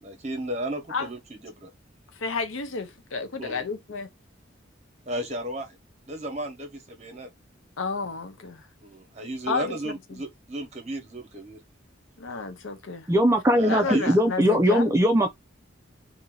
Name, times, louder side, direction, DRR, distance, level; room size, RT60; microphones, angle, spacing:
voice 1, 0.0-1.7 3.4-3.7 5.1-5.8 6.1-7.3 8.8-11.6 13.5-14.1, right 1 dB, 35° right, 1.1 m, -34 dB
voice 2, 2.2-4.1 7.8-8.7 9.5-10.2 12.2-13.1 13.7-14.9, left 4 dB, 80° left, 0.8 m, -31 dB
voice 3, 13.1-15.3, equal, 15° right, 0.3 m, -20 dB
2.8 x 2.7 x 3.8 m
head